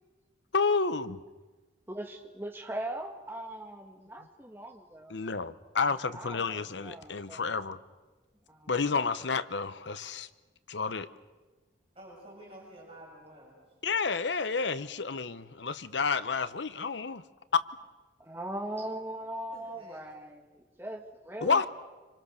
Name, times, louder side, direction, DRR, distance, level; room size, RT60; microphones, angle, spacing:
voice 1, 0.5-1.2 5.1-7.8 8.7-10.3 10.7-11.1 13.8-17.2 17.5-17.6 21.4-21.7, left 5 dB, 80° left, 1.0 m, -30 dB
voice 2, 1.9-5.2 6.1-7.7 8.5-8.7 18.2-21.7, right 1 dB, 10° right, 2.0 m, -40 dB
voice 3, 11.9-13.6 19.5-20.0, right 1 dB, 30° right, 7.7 m, -50 dB
27.0 x 25.5 x 6.7 m
head